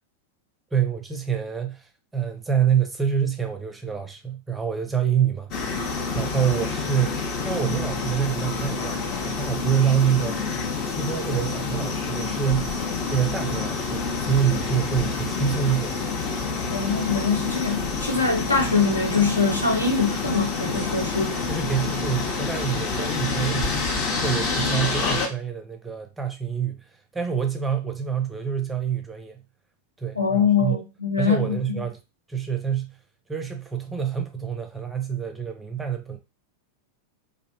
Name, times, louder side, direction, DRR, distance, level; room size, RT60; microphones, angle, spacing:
voice 1, 0.7-9.0 9.3-10.5 10.9-16.0 21.5-23.7 24.2-29.4 30.0-30.8 31.2-32.0 32.3-33.0 33.3-36.2, right 8 dB, 10° right, 0.5 m, -26 dB
sound 1, 5.5-25.3, left 4 dB, 40° left, 0.6 m, -28 dB
voice 2, 16.7-21.4 30.2-31.6, left 5 dB, 80° left, 0.6 m, -23 dB
2.5 x 2.0 x 2.8 m
figure-of-eight pair, 90°, 0 cm